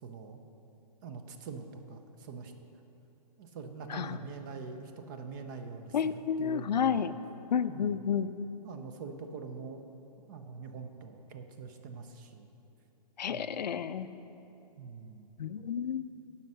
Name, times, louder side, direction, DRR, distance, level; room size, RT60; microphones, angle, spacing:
voice 1, 0.0-0.4 1.0-2.5 3.4-7.1 7.7-8.0 8.6-9.8 10.3-12.5 13.3-13.6 14.8-15.3, right 5 dB, 30° right, 6 dB, 0.6 m, -44 dB
voice 2, 5.9-7.1 7.5-8.3 13.2-14.1 15.4-16.0, left 7 dB, 85° left, 13 dB, 0.4 m, -31 dB
9.2 x 5.7 x 6.2 m, 3.0 s
hypercardioid pair, 145°, 21 cm